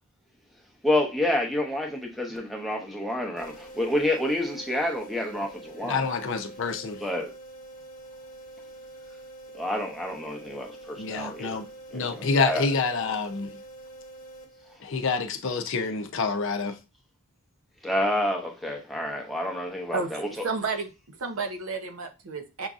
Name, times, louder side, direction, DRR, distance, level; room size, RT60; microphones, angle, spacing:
voice 1, 0.8-6.1 7.0-7.3 9.5-11.6 11.9-12.7 17.8-20.4, left 1 dB, ahead, 0.7 m, -28 dB
sound 1, 3.4-15.1, right 2 dB, 40° left, 1.0 m, -46 dB
voice 2, 5.8-7.0 11.0-11.6 11.9-13.6 14.8-16.8, left 4 dB, 60° left, 0.5 m, -27 dB
voice 3, 19.9-20.9 21.2-22.7, right 4 dB, 65° right, 0.7 m, -31 dB
6.1 x 2.6 x 2.4 m
head